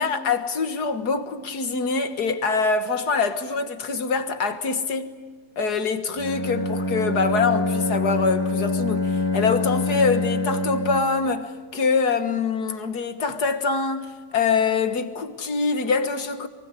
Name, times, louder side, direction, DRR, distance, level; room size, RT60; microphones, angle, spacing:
voice 1, 0.0-5.1 5.6-16.5, left 4 dB, 60° left, 2.0 m, -24 dB
Bowed string instrument, 6.2-11.3, left 2 dB, 15° left, 1.3 m, -25 dB
23.5 x 23.5 x 9.9 m
omnidirectional pair, 1.9 m